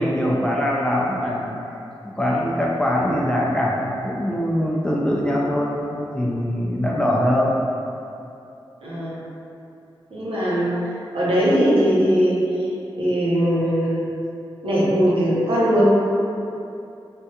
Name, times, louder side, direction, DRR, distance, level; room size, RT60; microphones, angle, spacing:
voice 1, 0.0-1.5 2.0-7.5, equal, 10° left, -4 dB, 0.4 m, -22 dB
voice 2, 8.8-9.2 10.1-10.7 11.1-12.7 12.9-14.0 14.6-15.8, equal, 85° right, -8 dB, 0.8 m, -20 dB
3.4 x 2.3 x 2.7 m, 2.7 s
wide cardioid pair, 90°, 9 cm